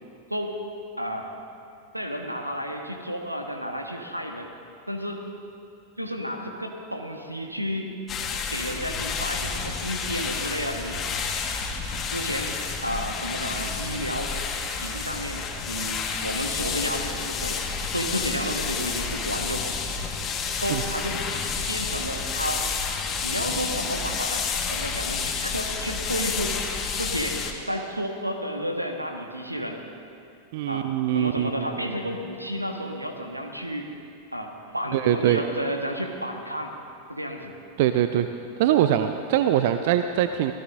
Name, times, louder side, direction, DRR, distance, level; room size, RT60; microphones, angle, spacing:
voice 1, 1.0-1.3 1.9-4.5 4.9-5.2 6.0-7.9 8.5-11.0 12.1-14.4 14.8-17.6 17.9-19.7 20.6-21.2 21.7-22.7 23.2-24.4 24.7-26.6 27.0-29.8 30.7-33.9 34.3-36.7 37.1-37.5 38.1-38.3, equal, 85° right, 3 dB, 1.5 m, -31 dB
sound 1, 8.1-27.5, left 5 dB, 25° left, 1.5 m, -30 dB
voice 2, 30.5-31.7 34.9-35.4 37.8-38.3 38.6-40.5, right 11 dB, 50° right, 9 dB, 0.5 m, -22 dB
26.0 x 18.0 x 2.6 m, 2.5 s
figure-of-eight pair, 90°, 0 cm